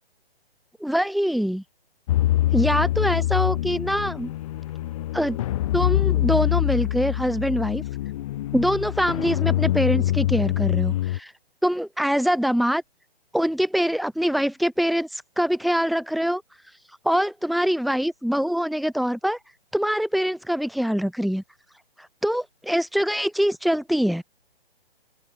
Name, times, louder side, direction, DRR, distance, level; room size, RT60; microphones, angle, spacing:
voice 1, 0.8-1.6 2.5-4.3 5.1-5.4 5.7-7.8 8.5-11.3 11.6-12.8 13.3-16.4 17.0-19.4 19.7-21.4 22.2-24.2, equal, ahead, 1.3 m, -24 dB
sound 1, 2.1-11.2, left 14 dB, 35° left, 2.1 m, -24 dB
hypercardioid pair, 160°, 31 cm